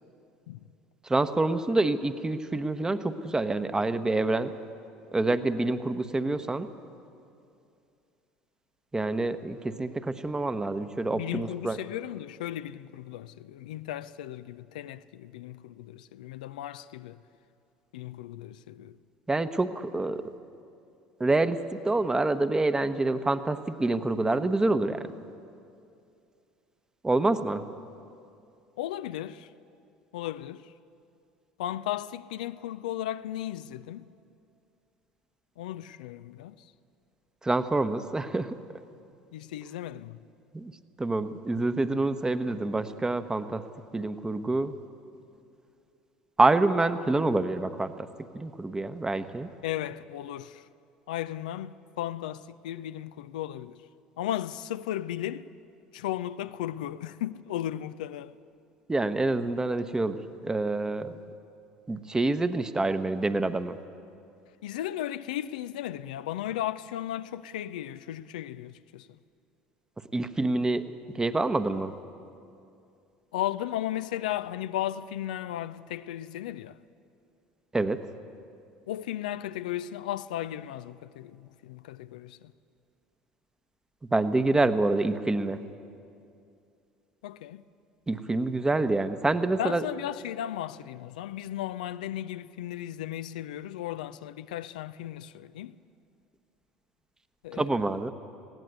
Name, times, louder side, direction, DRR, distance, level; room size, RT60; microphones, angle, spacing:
voice 1, 1.0-4.5 5.1-6.7 8.9-11.8 19.3-20.2 21.2-25.1 27.0-27.6 37.4-38.5 40.5-40.7 41.0-43.6 43.9-44.7 46.4-48.1 48.3-49.5 58.9-61.2 61.9-63.8 70.1-70.9 71.1-71.9 77.7-78.0 84.1-85.6 88.1-89.8 97.5-98.1, right 2 dB, 15° right, 1.0 m, -27 dB
voice 2, 11.1-17.2 17.9-19.0 28.8-29.5 30.1-30.7 31.6-34.1 35.6-36.7 39.3-40.2 49.6-50.7 51.1-53.8 54.2-55.5 55.9-58.3 64.6-69.1 73.3-76.8 78.9-82.5 87.2-87.6 89.6-95.8 97.4-97.7, left 12 dB, 75° left, 0.4 m, -35 dB
20.0 x 16.5 x 8.1 m
hypercardioid pair, 70°, 4 cm